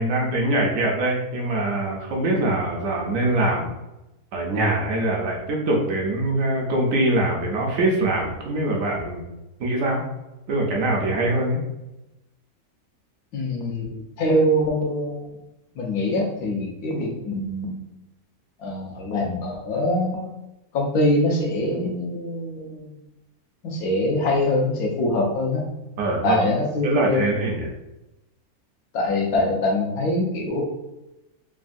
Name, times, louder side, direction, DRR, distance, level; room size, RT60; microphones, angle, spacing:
voice 1, 0.0-3.7 4.3-9.3 9.6-10.0 10.5-11.6 26.0-26.5 26.8-27.7, right 1 dB, 70° right, -1 dB, 0.9 m, -23 dB
voice 2, 13.3-15.3 15.8-17.9 18.6-20.3 20.7-22.9 23.6-25.6 26.2-27.2 28.9-30.6, left 1 dB, 75° left, -1 dB, 1.2 m, -24 dB
3.4 x 2.2 x 2.5 m, 0.93 s
omnidirectional pair, 1.6 m